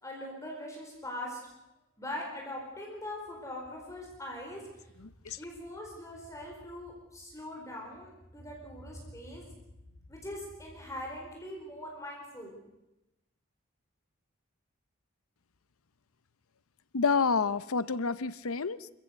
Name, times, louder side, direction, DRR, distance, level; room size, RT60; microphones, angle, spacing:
voice 1, 0.0-1.4 2.0-4.6 5.4-9.5 10.1-12.6, left 1 dB, 15° left, -1 dB, 4.6 m, -41 dB
voice 2, 5.0-5.4 16.9-18.9, left 5 dB, 90° left, 17 dB, 0.8 m, -29 dB
27.0 x 15.0 x 8.0 m, 0.94 s
head